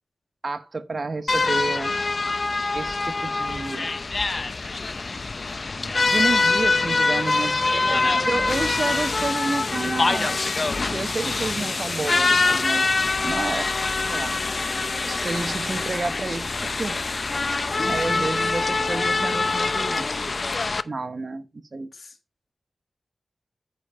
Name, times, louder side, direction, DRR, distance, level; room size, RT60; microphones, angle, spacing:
voice 1, 0.4-1.9 2.7-3.9 6.0-10.4 10.8-12.9 13.2-13.7 14.1-14.3 15.1-17.2 17.9-20.1 20.8-21.9, right 3 dB, 50° right, 1.0 m, -30 dB
sound 1, 1.3-20.8, left 3 dB, 55° left, 0.5 m, -24 dB
voice 2, 7.8-8.6 17.7-18.5 21.9-22.2, left 3 dB, 70° left, 1.9 m, -38 dB
9.7 x 5.1 x 4.4 m
wide cardioid pair, 65°, 0 cm